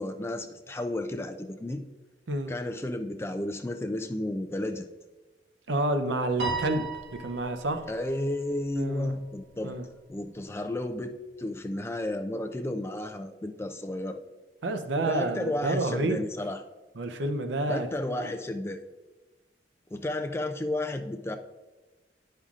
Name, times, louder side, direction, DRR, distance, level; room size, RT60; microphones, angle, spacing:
voice 1, 0.0-1.8 2.5-4.9 7.9-9.7 10.1-14.2 15.0-16.6 17.7-18.8 19.9-21.4, left 1 dB, 15° left, 7 dB, 0.3 m, -32 dB
voice 2, 5.7-6.9 7.2-7.8 8.8-9.1 9.6-9.8 14.6-16.2 17.0-17.9 18.2-18.3, right 2 dB, 80° right, 7 dB, 0.6 m, -29 dB
Piano, 6.4-8.9, right 4 dB, 60° right, 1.5 m, -36 dB
10.0 x 5.5 x 2.4 m, 1.2 s
head